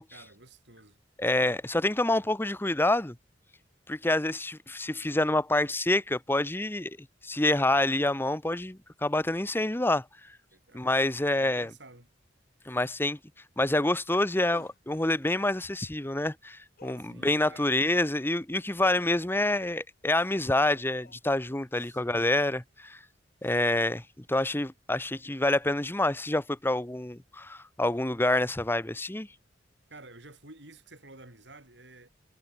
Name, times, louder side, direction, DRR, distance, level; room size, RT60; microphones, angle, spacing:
voice 1, 0.1-1.6 10.5-10.9 11.4-12.1 17.0-17.7 21.7-22.3 23.4-23.8 29.9-32.1, right 2 dB, 70° right, 6.5 m, -52 dB
voice 2, 1.2-3.2 3.9-7.0 7.2-10.0 10.7-11.7 12.7-13.2 13.6-23.0 23.4-24.0 24.3-29.3, left 1 dB, 10° left, 1.0 m, -27 dB
sound 1, 14.5-14.8 16.8-17.1 18.8-19.2 20.5-21.2, left 3 dB, 55° left, 2.0 m, -50 dB
head